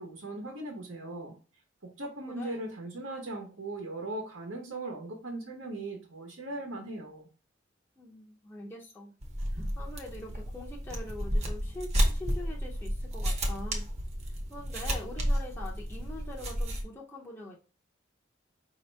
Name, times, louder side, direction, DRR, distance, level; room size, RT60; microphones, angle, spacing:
voice 1, 0.0-1.3 1.8-7.3, right 2 dB, 85° right, 0 dB, 1.1 m, -39 dB
voice 2, 2.3-2.6 8.0-9.1 9.5-13.9 14.3-17.6, left 1 dB, 10° left, -4 dB, 0.7 m, -44 dB
sound 1, 9.2-16.8, equal, 35° right, 0.8 m, -32 dB
5.1 x 2.8 x 3.3 m, 0.36 s
head